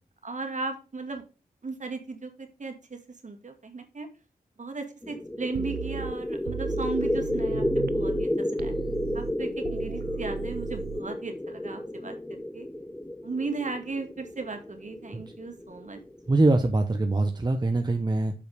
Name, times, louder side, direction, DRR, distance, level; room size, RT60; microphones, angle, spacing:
voice 1, 0.2-1.2 1.6-2.7 3.2-4.1 4.6-8.7 9.1-12.7 13.2-16.0, right 3 dB, 50° right, 5 dB, 2.0 m, -36 dB
sound 1, 5.0-16.5, left 1 dB, 10° left, 0.6 m, -32 dB
sound 2, 5.5-8.3 8.6-11.0, right 9 dB, 90° right, 0.4 m, -36 dB
voice 2, 16.3-18.3, right 2 dB, 25° right, 6 dB, 0.9 m, -23 dB
7.1 x 5.1 x 4.9 m, 0.31 s
cardioid pair, 55°, 16 cm